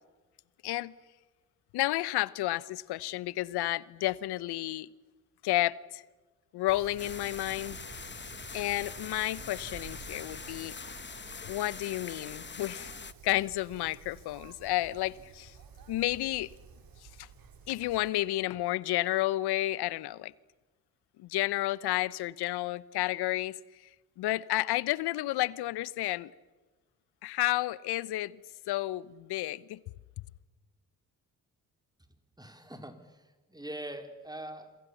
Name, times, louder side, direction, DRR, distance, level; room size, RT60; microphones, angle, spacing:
voice 1, 0.6-0.9 1.7-4.9 5.4-6.0 6.5-7.8 8.5-10.7 11.5-12.9 13.2-15.5 15.9-16.5 17.2-17.3 17.7-20.3 21.2-23.6 24.2-26.3 27.2-28.4 28.7-29.8, left 16 dB, 70° left, 0.9 m, -31 dB
Wind, 6.7-18.1, right 6 dB, 55° right, 3.7 m, -51 dB
sound 1, 7.0-13.1, left 5 dB, 25° left, 1.2 m, -43 dB
voice 2, 32.4-33.2 33.5-34.7, right 1 dB, 10° right, 4.7 m, -42 dB
27.5 x 23.5 x 7.2 m
hypercardioid pair, 45°, 41 cm